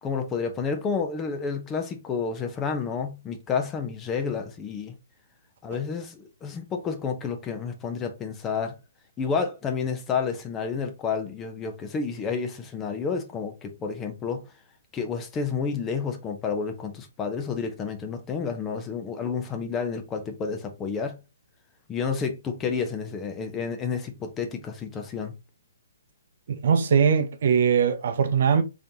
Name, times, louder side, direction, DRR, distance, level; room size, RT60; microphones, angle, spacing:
voice 1, 0.0-4.9 5.6-8.8 9.2-14.4 14.9-21.2 21.9-25.3, left 5 dB, 20° left, 0.8 m, -30 dB
voice 2, 26.6-28.6, right 6 dB, 60° right, 0.6 m, -21 dB
4.0 x 3.3 x 2.8 m
hypercardioid pair, 130°, 0 cm